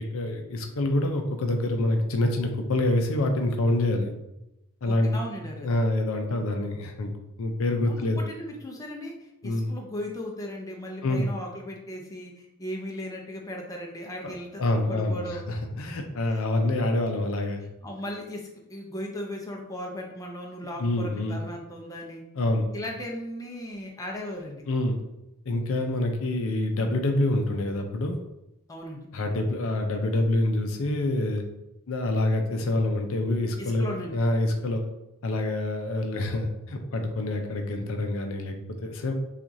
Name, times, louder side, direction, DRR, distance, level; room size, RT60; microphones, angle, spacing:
voice 1, 0.0-4.1 4.8-5.2 5.6-8.2 9.4-9.7 11.0-11.3 14.2-14.3 14.6-17.6 20.8-21.4 22.4-22.7 24.7-25.0 25.5-28.2 29.1-31.4 31.9-34.8 35.2-38.6 38.8-39.1, left 1 dB, 65° left, 4 dB, 0.5 m, -26 dB
voice 2, 4.8-5.7 7.9-15.5 16.2-16.4 17.8-22.2 22.7-24.6 28.7-29.1 33.6-34.2, left 1 dB, 15° left, 0 dB, 0.6 m, -37 dB
5.8 x 2.4 x 2.6 m, 0.89 s
head